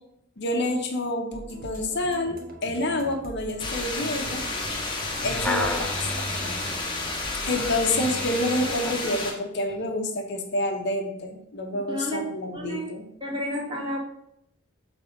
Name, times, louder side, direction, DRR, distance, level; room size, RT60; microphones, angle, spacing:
voice 1, 0.4-4.4 5.2-6.1 6.4-6.5 7.4-13.1, left 1 dB, 55° left, 3 dB, 0.9 m, -28 dB
sound 1, 1.3-8.1, right 1 dB, 45° right, 1.0 m, -42 dB
sound 2, 3.6-9.3, left 3 dB, 25° left, 1.3 m, -31 dB
sound 3, 5.2-9.1 9.7-9.8, left 1 dB, 5° left, 0.5 m, -33 dB
voice 2, 11.9-12.3 12.5-12.9 13.2-14.0, equal, 20° right, -3 dB, 1.4 m, -31 dB
6.6 x 3.4 x 5.1 m, 0.76 s
head